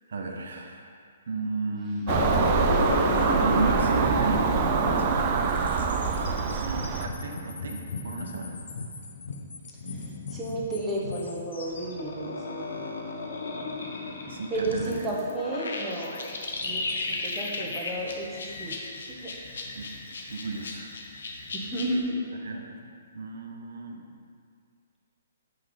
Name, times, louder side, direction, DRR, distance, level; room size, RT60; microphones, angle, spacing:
voice 1, 0.1-0.9 1.3-2.1 3.3-5.4 6.4-8.6 14.3-15.1 19.7-19.9 20.3-21.0 21.4-21.5 22.4-22.8 23.1-24.0, right 3 dB, 75° right, 3 dB, 0.8 m, -34 dB
sound 1, 2.1-22.0, left 3 dB, 75° left, 0.7 m, -34 dB
Car passing by / Engine, 2.1-7.1, right 6 dB, 35° right, 0.4 m, -25 dB
voice 2, 9.9-12.8 14.5-16.4 16.6-18.8 19.1-19.3 21.5-22.3, right 1 dB, 10° right, -5 dB, 1.0 m, -32 dB
5.5 x 3.6 x 5.0 m, 2.2 s
hypercardioid pair, 145°, 0 cm